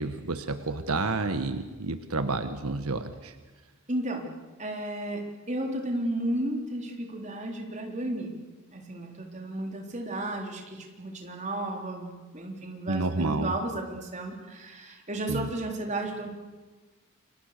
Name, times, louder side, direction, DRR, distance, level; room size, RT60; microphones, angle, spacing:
voice 1, 0.0-3.3 12.9-13.5 15.3-15.5, right 3 dB, 80° right, 9 dB, 1.4 m, -30 dB
voice 2, 3.9-4.3 4.6-8.4 8.7-16.4, right 1 dB, 30° right, 2 dB, 3.7 m, -33 dB
29.5 x 23.5 x 6.7 m, 1.2 s
head